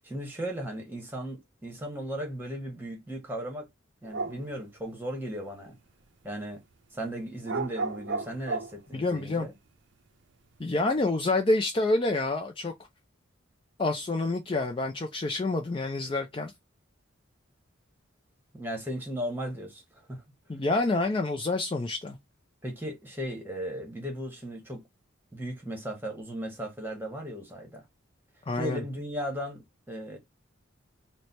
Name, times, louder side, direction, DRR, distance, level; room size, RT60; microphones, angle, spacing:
voice 1, 0.0-3.7 4.0-5.8 6.2-6.6 6.9-9.5 18.5-20.2 22.6-24.8 25.3-27.8 28.6-30.2, equal, 10° right, 1.0 m, -36 dB
sound 1, 4.0-4.5 4.8-4.9 7.2-8.8, right 3 dB, 60° right, 0.5 m, -33 dB
voice 2, 8.9-9.5 10.6-12.7 13.8-16.5 20.5-22.2 28.5-28.8, left 2 dB, 25° left, 0.3 m, -27 dB
3.2 x 2.1 x 4.0 m
head